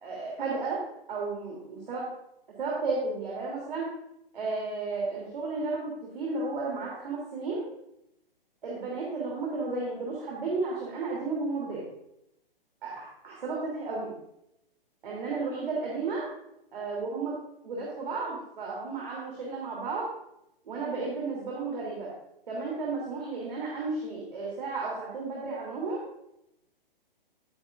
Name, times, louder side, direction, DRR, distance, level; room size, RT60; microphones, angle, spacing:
voice 1, 0.0-0.8 1.1-2.1 2.6-3.9 4.3-7.6 8.6-11.8 12.8-14.1 15.0-16.3 16.7-17.4 17.6-20.1 20.6-22.1 22.5-26.0, right 3 dB, 60° right, -4 dB, 3.3 m, -33 dB
11.5 x 9.9 x 2.6 m, 0.81 s
figure-of-eight pair, 125°, 29 cm